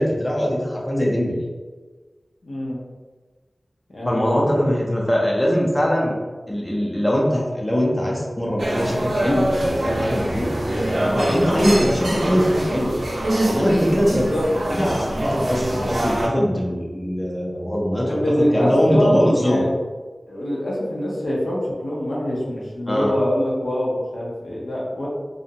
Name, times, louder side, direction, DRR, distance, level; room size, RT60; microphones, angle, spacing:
voice 1, 0.0-1.5 4.0-6.2 6.5-10.5 11.1-13.0 13.5-14.3 14.7-19.6 22.9-23.1, equal, 20° left, -3 dB, 0.5 m, -21 dB
voice 2, 2.4-2.8 3.9-4.6 14.1-14.5 18.0-19.7 20.3-25.1, equal, 80° left, -5 dB, 0.6 m, -24 dB
sound 1, 8.6-16.3, right 1 dB, 70° right, 0.4 m, -24 dB
2.5 x 2.0 x 2.7 m, 1.4 s
wide cardioid pair, 55°, 0 cm